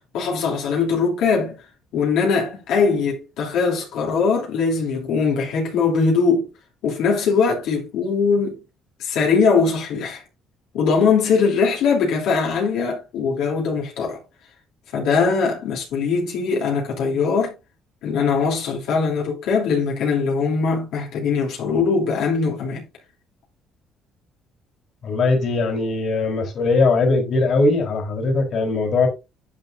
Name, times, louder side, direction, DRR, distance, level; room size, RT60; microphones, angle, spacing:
voice 1, 0.0-1.6 1.9-6.5 6.8-8.6 9.0-10.2 10.7-14.2 14.9-17.5 18.0-22.8, left 5 dB, 80° left, 3.1 m, -21 dB
voice 2, 25.0-29.1, left 3 dB, 50° left, 3.7 m, -20 dB
11.0 x 7.0 x 2.6 m
cardioid pair, 125°, 0 cm